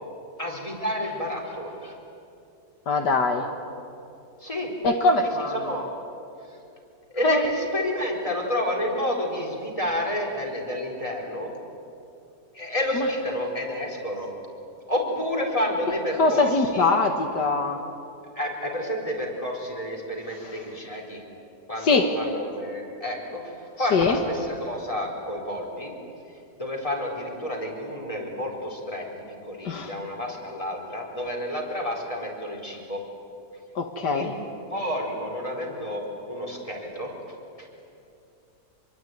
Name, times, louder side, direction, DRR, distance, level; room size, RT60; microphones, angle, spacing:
voice 1, 0.4-2.0 4.4-4.7 5.5-5.9 7.1-11.5 12.5-14.3 14.9-16.9 18.3-21.2 21.7-25.9 26.6-29.1 29.4-33.0 34.1-34.3 34.7-37.1 37.6-37.7, left 1 dB, 20° left, -1 dB, 4.6 m, -30 dB
voice 2, 2.9-3.5 4.8-5.8 7.2-7.4 12.9-13.1 16.2-17.8 20.4-20.6 21.8-22.1 23.9-24.2 29.6-29.9 33.8-34.3, left 3 dB, 75° left, 5 dB, 2.0 m, -22 dB
26.0 x 23.0 x 9.4 m, 2.6 s
omnidirectional pair, 1.8 m